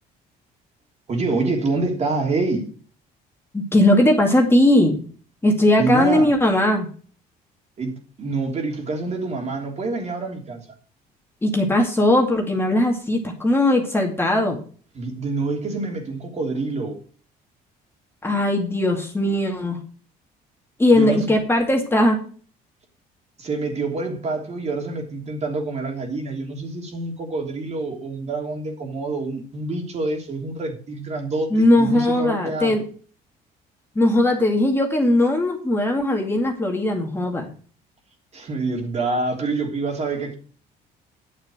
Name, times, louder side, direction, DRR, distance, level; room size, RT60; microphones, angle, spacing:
voice 1, 1.1-2.7 5.8-6.3 7.8-10.6 14.9-17.0 20.9-21.3 23.4-32.8 38.3-40.3, right 3 dB, 40° right, 3.2 m, -26 dB
voice 2, 3.5-5.0 5.4-6.9 11.4-14.6 18.2-19.8 20.8-22.2 31.5-32.8 34.0-37.5, left 1 dB, 15° left, 2.3 m, -19 dB
9.6 x 6.7 x 6.2 m
cardioid pair, 110°, 17 cm